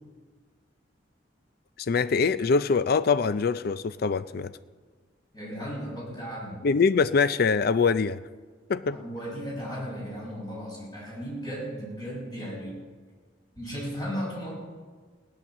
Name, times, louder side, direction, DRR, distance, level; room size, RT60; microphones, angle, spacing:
voice 1, 1.8-4.5 6.6-8.2 8.7-9.0, left 5 dB, 55° left, 14 dB, 0.4 m, -23 dB
voice 2, 5.3-6.6 8.9-12.8 13.6-14.6, equal, 25° left, -4 dB, 6.5 m, -35 dB
17.0 x 10.5 x 7.2 m, 1.5 s
head